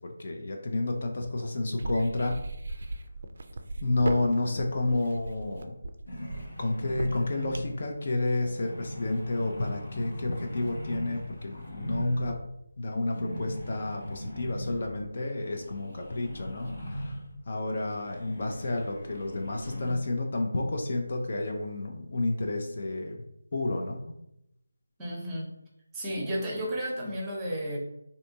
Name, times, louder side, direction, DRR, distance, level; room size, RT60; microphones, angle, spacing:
voice 1, 0.0-2.4 2.8-2.9 3.8-5.8 6.6-12.4 12.8-23.2 23.5-24.1, left 2 dB, 45° left, 1 dB, 0.5 m, -30 dB
sound 1, 1.8-7.8, right 2 dB, 50° right, 0.4 m, -37 dB
sound 2, 6.1-8.0 8.4-12.5 12.9-17.4 17.8-19.9, equal, 75° left, 1.0 m, -39 dB
voice 2, 25.0-25.5 25.9-27.8, equal, 10° right, -4 dB, 0.8 m, -32 dB
3.4 x 2.6 x 2.7 m, 0.82 s
figure-of-eight pair, 160°, 0 cm